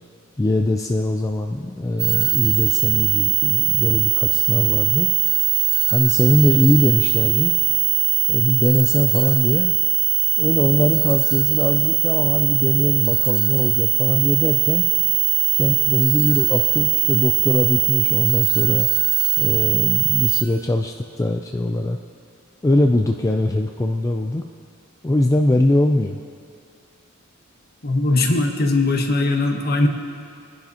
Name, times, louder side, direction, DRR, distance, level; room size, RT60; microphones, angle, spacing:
voice 1, 0.4-5.1 5.9-7.5 8.3-9.7 10.4-14.9 15.5-18.9 19.4-22.0 22.6-24.4 25.0-26.2, left 1 dB, 15° left, 3 dB, 0.4 m, -21 dB
sound 1, 2.0-20.4, right 15 dB, 30° right, 0.6 m, -19 dB
voice 2, 27.8-29.9, left 2 dB, 50° left, 3 dB, 1.1 m, -19 dB
22.5 x 10.5 x 2.9 m, 2.3 s
head